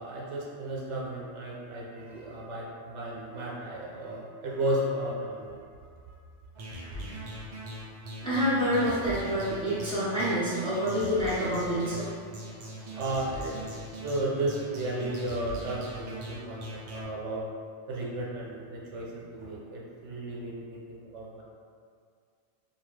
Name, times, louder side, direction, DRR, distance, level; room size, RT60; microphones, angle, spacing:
voice 1, 0.0-5.6 12.9-13.6 14.0-17.4 17.9-21.4, right 1 dB, 80° right, -3 dB, 0.9 m, -34 dB
sound 1, 6.5-17.0, right 1 dB, 60° right, 0.3 m, -41 dB
voice 2, 8.2-12.1, equal, 5° left, -12 dB, 1.0 m, -27 dB
2.7 x 2.3 x 3.1 m, 2.2 s
omnidirectional pair, 1.2 m